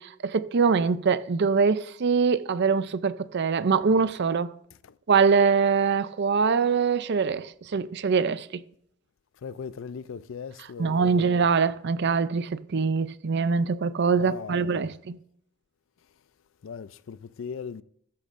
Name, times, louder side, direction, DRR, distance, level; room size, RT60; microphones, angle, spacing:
voice 1, 0.0-4.5 5.1-8.6 10.8-15.2, right 5 dB, 55° right, 0.5 m, -23 dB
voice 2, 9.4-11.3 14.1-14.9 16.6-17.8, left 6 dB, 65° left, 0.4 m, -38 dB
15.0 x 13.0 x 2.6 m
head